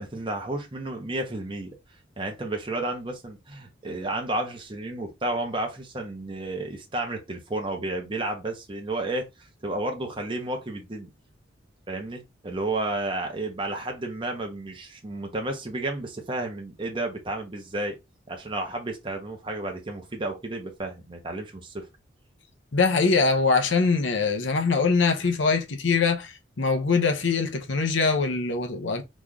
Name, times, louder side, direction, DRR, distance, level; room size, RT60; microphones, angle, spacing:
voice 1, 0.0-1.7 2.2-9.3 9.6-11.1 11.9-18.0 18.3-21.9, right 2 dB, 25° right, 0.9 m, -32 dB
voice 2, 22.7-29.0, left 4 dB, 65° left, 0.7 m, -23 dB
3.1 x 2.5 x 3.7 m
head